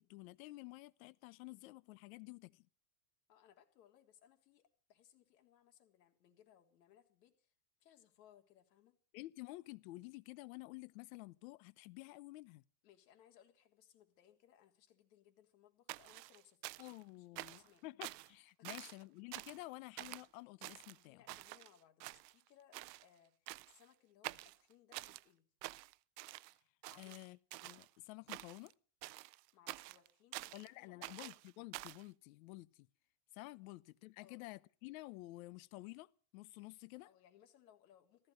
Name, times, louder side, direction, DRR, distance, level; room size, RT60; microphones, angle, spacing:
voice 1, 0.0-2.7 9.1-12.6 16.8-21.2 27.0-28.7 30.5-32.9 33.3-37.1, left 20 dB, 60° left, 0.9 m, -51 dB
voice 2, 3.3-7.5 7.8-9.0 12.8-16.6 17.1-17.8 18.6-19.0 19.5-19.7 20.9-25.4 26.9-27.2 29.5-31.2 34.2-34.4 37.0-38.3, left 10 dB, 80° left, 3.6 m, -67 dB
sound 1, 15.9-17.0 17.4-17.7 18.0-18.3 18.6-19.0 19.3-19.7 20.0-20.3 20.6-21.7 22.0-22.5 22.7-23.0 23.5-23.8 24.2-25.2 25.6-26.5 26.8-27.9 28.3-28.7 29.0-30.7 31.0-32.0, right 19 dB, 85° right, 0.7 m, -48 dB
15.0 x 14.5 x 6.4 m
supercardioid pair, 160°, 49 cm